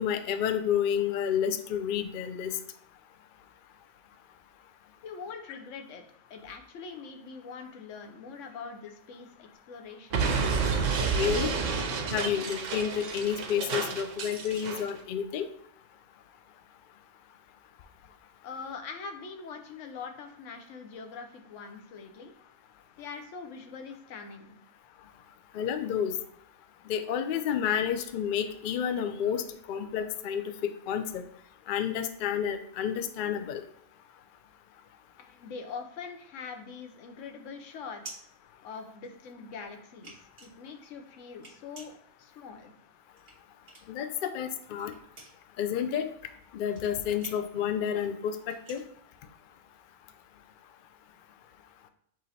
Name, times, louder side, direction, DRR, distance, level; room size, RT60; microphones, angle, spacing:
voice 1, 0.0-2.5 11.1-11.5 12.1-15.5 25.5-26.1 26.9-31.2 31.7-33.6 43.9-44.9 45.6-46.1 46.5-48.8, left 8 dB, 60° left, 8 dB, 0.5 m, -30 dB
voice 2, 5.0-6.0 6.3-10.3 18.4-22.3 23.0-24.6 35.2-38.2 38.6-42.7, left 5 dB, 90° left, 5 dB, 1.0 m, -43 dB
Explosion, 10.1-14.9, right 5 dB, 85° right, 1.0 m, -30 dB
sound 1, 36.7-39.3 39.7-44.1 44.4-49.9, right 2 dB, 45° right, 1.4 m, -51 dB
6.1 x 3.2 x 2.7 m, 0.72 s
omnidirectional pair, 1.2 m